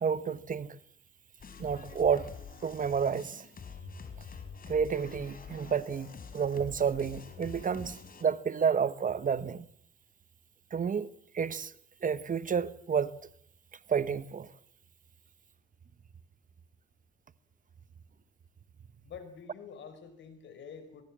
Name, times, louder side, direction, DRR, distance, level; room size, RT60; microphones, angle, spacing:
voice 1, 0.0-0.8 1.6-2.3 2.6-3.5 4.7-9.7 10.7-11.1 11.3-11.7 12.0-13.1 13.9-14.5, right 6 dB, 40° right, 1.2 m, -30 dB
sound 1, 1.4-8.2, left 6 dB, 45° left, 4.6 m, -47 dB
voice 2, 19.0-21.0, left 6 dB, 70° left, 5.1 m, -47 dB
22.5 x 22.5 x 7.5 m
cardioid pair, 90°, 20 cm